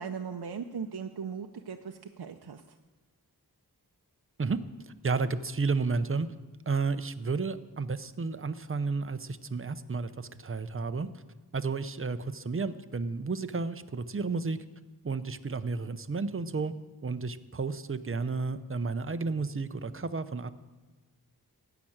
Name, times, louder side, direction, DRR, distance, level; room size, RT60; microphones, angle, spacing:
voice 1, 0.0-2.8, right 6 dB, 75° right, 4 dB, 0.6 m, -38 dB
voice 2, 5.0-6.3 6.7-11.1 11.5-14.6 15.0-16.7 17.0-20.5, right 4 dB, 35° right, 12 dB, 0.6 m, -32 dB
15.0 x 5.9 x 8.8 m, 1.2 s
wide cardioid pair, 60°, 38 cm